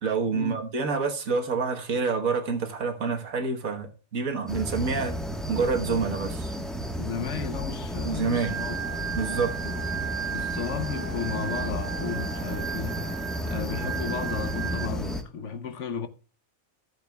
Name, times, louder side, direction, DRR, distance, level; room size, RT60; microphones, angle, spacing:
voice 1, 0.0-5.2 5.5-6.5 8.0-8.6 9.1-9.5, right 4 dB, 75° right, 1.7 m, -27 dB
sound 1, 4.5-15.2, equal, ahead, 1.1 m, -33 dB
voice 2, 7.0-8.8 9.6-9.8 10.3-13.2 13.5-16.1, left 6 dB, 60° left, 1.1 m, -34 dB
Organ, 8.4-14.9, right 8 dB, 40° right, 0.6 m, -35 dB
15.0 x 7.5 x 2.3 m
omnidirectional pair, 1.5 m